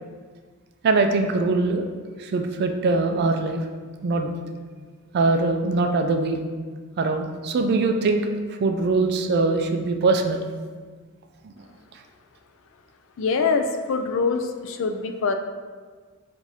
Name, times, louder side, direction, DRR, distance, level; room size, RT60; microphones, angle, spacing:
voice 1, 0.8-1.8 2.2-3.6 4.0-4.3 5.1-6.4 7.0-8.3 8.6-10.4 11.4-11.5, right 3 dB, 50° right, 5 dB, 0.4 m, -22 dB
voice 2, 13.2-15.3, left 4 dB, 65° left, 7 dB, 0.4 m, -24 dB
4.0 x 2.6 x 4.7 m, 1.5 s
head